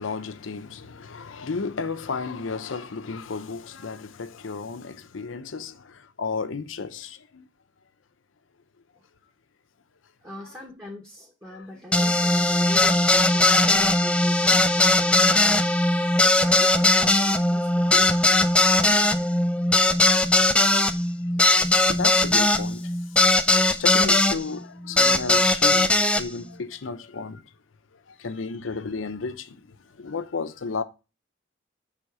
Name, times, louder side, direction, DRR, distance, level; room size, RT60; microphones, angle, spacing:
voice 1, 0.0-7.5 11.5-11.7 12.0-12.2 12.8-12.9 13.5-14.0 21.4-21.5 21.8-23.0 23.7-27.4 28.1-30.8, left 4 dB, 85° left, 0.6 m, -33 dB
voice 2, 10.2-19.3 28.1-28.3, left 1 dB, 10° right, 1.1 m, -42 dB
sound 1, 11.9-24.4 25.0-26.2, left 2 dB, 5° left, 0.3 m, -19 dB
6.7 x 3.5 x 4.7 m
head